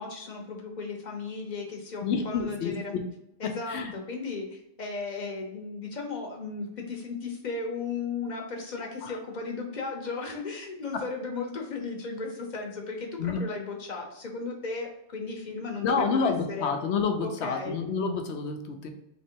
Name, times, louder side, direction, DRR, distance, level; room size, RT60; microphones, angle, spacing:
voice 1, 0.0-2.9 3.4-16.7 17.2-17.8, left 4 dB, 45° left, 2 dB, 1.0 m, -35 dB
voice 2, 2.0-2.7 3.7-3.9 9.0-9.2 13.2-13.4 15.8-18.9, left 5 dB, 90° left, 5 dB, 1.0 m, -28 dB
3.6 x 3.1 x 4.5 m, 0.82 s
omnidirectional pair, 1.1 m